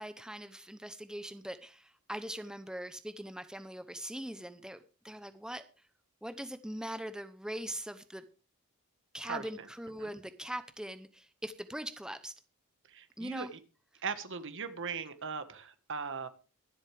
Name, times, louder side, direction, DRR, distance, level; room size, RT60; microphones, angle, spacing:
voice 1, 0.0-5.6 6.2-8.2 9.1-12.3 13.2-13.5 13.9-14.0, right 1 dB, 5° right, 10 dB, 0.8 m, -41 dB
voice 2, 12.9-13.6 14.0-16.3, right 5 dB, 60° right, 10 dB, 1.6 m, -39 dB
23.5 x 8.0 x 3.5 m, 0.34 s
head